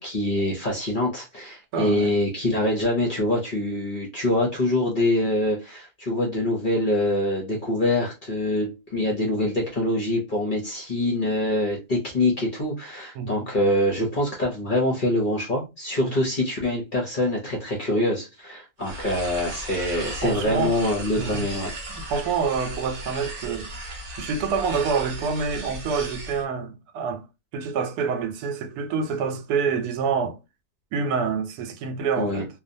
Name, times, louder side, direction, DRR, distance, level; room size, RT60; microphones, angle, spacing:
voice 1, 0.0-21.7 32.2-32.4, left 1 dB, 50° left, 0.6 m, -25 dB
voice 2, 1.7-2.1 13.2-13.5 16.0-16.1 20.2-20.8 21.2-21.5 21.9-23.7 24.2-27.3 27.5-30.4 30.9-32.5, right 5 dB, 85° right, 1.1 m, -27 dB
sound 1, 18.8-26.4, right 1 dB, 50° right, 0.8 m, -36 dB
2.6 x 2.1 x 2.5 m
omnidirectional pair, 1.6 m